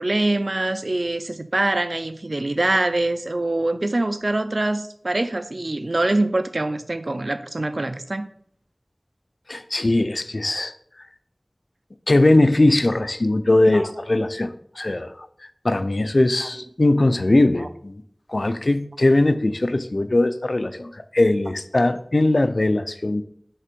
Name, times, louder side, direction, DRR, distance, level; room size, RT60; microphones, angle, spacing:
voice 1, 0.0-8.3 13.7-13.8 17.6-17.7, right 2 dB, 75° right, 0.4 m, -24 dB
voice 2, 9.5-10.7 12.1-18.0 18.3-23.2, left 2 dB, 75° left, 0.4 m, -20 dB
5.5 x 3.4 x 5.1 m
wide cardioid pair, 45°, 0 cm